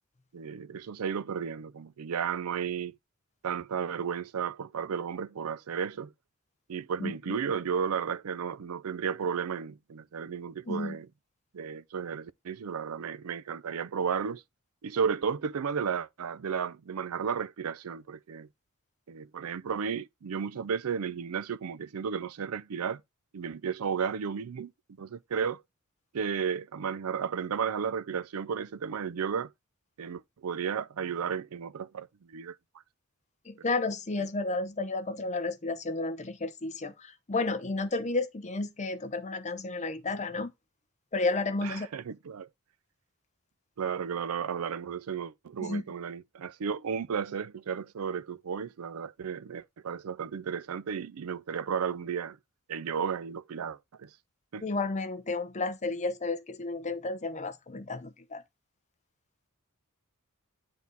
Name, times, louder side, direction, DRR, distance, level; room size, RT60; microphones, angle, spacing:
voice 1, 0.3-3.0 3.4-6.1 6.7-11.1 11.5-14.4 14.8-18.5 19.1-23.0 23.3-24.7 25.0-25.6 26.1-29.5 30.0-32.5 41.6-42.5 43.8-52.4 52.7-54.1 54.5-54.6, right 7 dB, 80° right, 0.5 m, -33 dB
voice 2, 7.0-7.4 10.7-11.0 33.4-40.5 41.1-41.9 45.6-45.8 54.6-58.4, left 3 dB, 35° left, 0.8 m, -32 dB
8.7 x 4.2 x 3.9 m
head